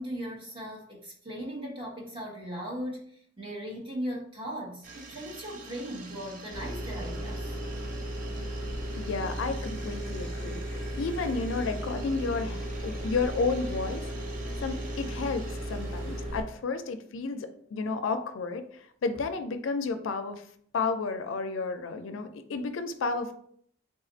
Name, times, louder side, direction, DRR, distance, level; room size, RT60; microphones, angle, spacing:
voice 1, 0.0-7.6, equal, 25° right, -2 dB, 1.1 m, -38 dB
sound 1, 4.8-16.2, right 3 dB, 45° right, 0.6 m, -47 dB
sound 2, 6.5-16.4, equal, 80° right, 1.7 m, -35 dB
voice 2, 8.9-14.1 14.6-18.6 19.0-20.4 20.7-23.3, left 4 dB, 75° left, 8 dB, 0.4 m, -32 dB
3.7 x 2.4 x 3.9 m, 0.63 s
head